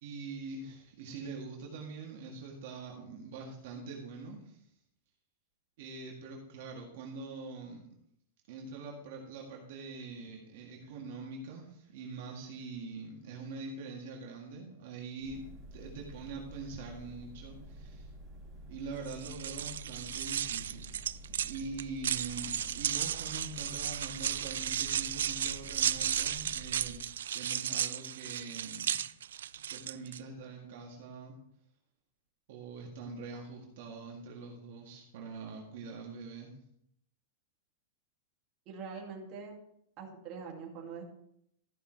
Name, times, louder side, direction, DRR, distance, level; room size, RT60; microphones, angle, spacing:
voice 1, 0.0-4.6 5.8-7.8 8.5-18.1 18.7-27.0 27.3-29.0 29.7-31.4 32.5-36.5, right 4 dB, 50° right, -1 dB, 1.9 m, -44 dB
sound 1, 15.2-27.0, right 1 dB, 15° right, 2.7 m, -50 dB
sound 2, 19.1-30.2, right 10 dB, 90° right, 0.4 m, -34 dB
voice 2, 38.7-39.6 40.0-41.0, right 5 dB, 30° right, -1 dB, 2.4 m, -43 dB
13.5 x 5.7 x 4.5 m, 0.73 s
supercardioid pair, 170°, 0 cm